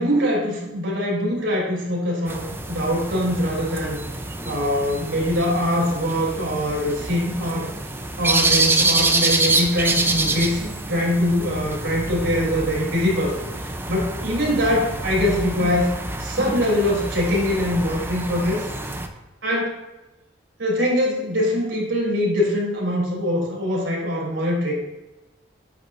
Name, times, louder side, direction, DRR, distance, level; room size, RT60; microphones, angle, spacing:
voice 1, 0.0-4.0 4.4-7.7 8.2-15.9 16.2-18.7 19.4-19.8 20.6-24.7, left 1 dB, 85° right, -3 dB, 3.4 m, -23 dB
sound 1, 2.3-19.1, right 2 dB, 10° right, 0.7 m, -26 dB
9.5 x 9.3 x 2.7 m, 1.0 s
head